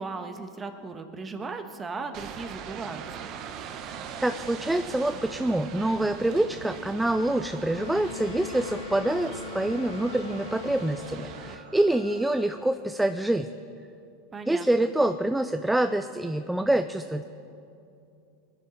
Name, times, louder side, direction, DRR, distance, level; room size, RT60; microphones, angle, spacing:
voice 1, 0.0-3.3 14.3-14.9, right 4 dB, 20° right, 7 dB, 1.2 m, -37 dB
sound 1, 2.1-11.6, right 8 dB, 50° right, 0.9 m, -41 dB
voice 2, 3.9-13.5 14.5-17.2, right 1 dB, 5° right, 9 dB, 0.4 m, -26 dB
sound 2, 4.6-12.5, right 4 dB, 85° right, 1.4 m, -48 dB
Wind instrument woodwind instrument, 7.7-11.7, left 8 dB, 85° left, 0.5 m, -41 dB
21.0 x 10.5 x 4.0 m, 2.6 s
hypercardioid pair, 110°, 0 cm